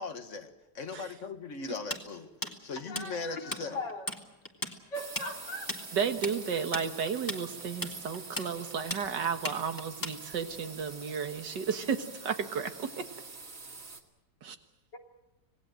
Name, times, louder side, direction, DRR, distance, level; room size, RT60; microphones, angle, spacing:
voice 1, 0.0-3.8, left 4 dB, 45° left, 8 dB, 2.0 m, -39 dB
Tools, 1.9-3.6 3.9-4.2 4.5-10.5, left 1 dB, 10° left, 2.0 m, -36 dB
voice 2, 2.9-4.1 4.9-5.7 14.9-15.0, left 1 dB, 85° left, 2 dB, 3.6 m, -39 dB
sound 1, 4.9-14.0, right 4 dB, 50° right, 2.5 m, -46 dB
voice 3, 5.9-13.1 14.4-14.6, right 6 dB, 80° right, 8 dB, 2.1 m, -33 dB
26.5 x 19.0 x 7.7 m, 1.0 s
omnidirectional pair, 1.8 m